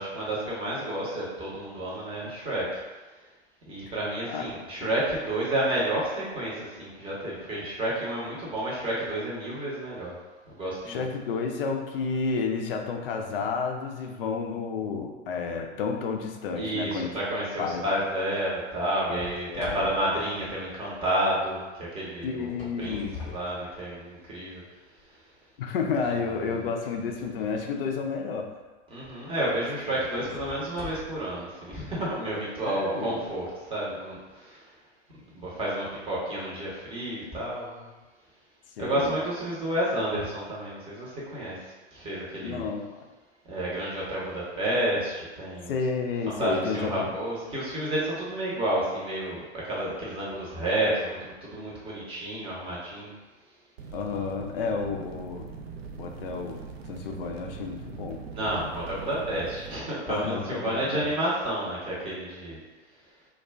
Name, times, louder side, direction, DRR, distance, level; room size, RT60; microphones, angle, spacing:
voice 1, 0.0-2.8 3.7-10.2 10.5-11.0 16.6-24.6 26.1-26.3 28.9-34.7 35.1-37.9 38.8-42.7 43.5-45.7 46.3-53.1 58.3-62.6, right 1 dB, 15° right, -6 dB, 0.8 m, -30 dB
voice 2, 10.9-17.1 17.6-17.8 19.1-19.2 19.5-19.9 22.2-23.2 25.6-28.5 29.5-29.6 30.2-30.6 32.6-33.2 38.8-39.2 42.4-43.1 45.7-47.1 53.9-55.5 56.0-58.2 60.1-61.1, left 5 dB, 55° left, 3 dB, 0.4 m, -31 dB
sound 1, 19.2-21.2 22.3-24.3 24.9-25.0 25.7-25.8 28.4-28.6 29.1-29.2 30.1-31.4, left 5 dB, 20° left, 0.9 m, -44 dB
sound 2, 53.8-59.8, right 5 dB, 60° right, 0.4 m, -42 dB
2.3 x 2.2 x 3.3 m, 1.2 s
figure-of-eight pair, 95°, 36 cm